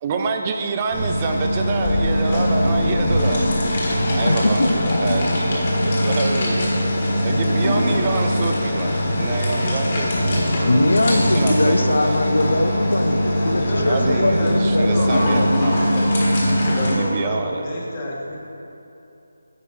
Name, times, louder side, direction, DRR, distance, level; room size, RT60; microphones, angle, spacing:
voice 1, 0.0-3.5 4.2-6.7 7.2-10.1 11.1-12.2 13.8-15.7 16.9-17.6, right 4 dB, 25° right, 4 dB, 0.3 m, -27 dB
sound 1, 0.9-17.0, equal, 35° left, 1.6 m, -20 dB
voice 2, 4.3-4.7 5.1-5.2 10.7-15.5, left 2 dB, 85° left, 8 dB, 0.5 m, -21 dB
voice 3, 13.4-16.2 16.6-18.4, equal, 20° left, -4 dB, 1.2 m, -29 dB
9.5 x 4.2 x 5.3 m, 2.9 s
figure-of-eight pair, 165°, 0 cm